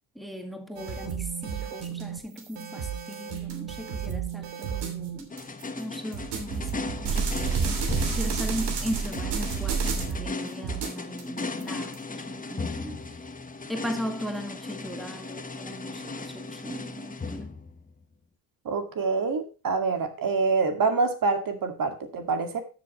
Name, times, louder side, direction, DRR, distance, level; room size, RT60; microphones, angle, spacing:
voice 1, 0.1-5.3 5.8-13.2 13.7-17.5, equal, ahead, 2.0 m, -38 dB
sound 1, 0.8-5.6 6.1-10.3 10.6-12.0, right 6 dB, 65° right, 3.0 m, -31 dB
sound 2, 5.3-18.0, left 3 dB, 20° left, 1.2 m, -37 dB
voice 2, 18.7-22.6, right 4 dB, 50° right, 2.2 m, -26 dB
13.0 x 7.0 x 3.1 m
supercardioid pair, 80°, 44 cm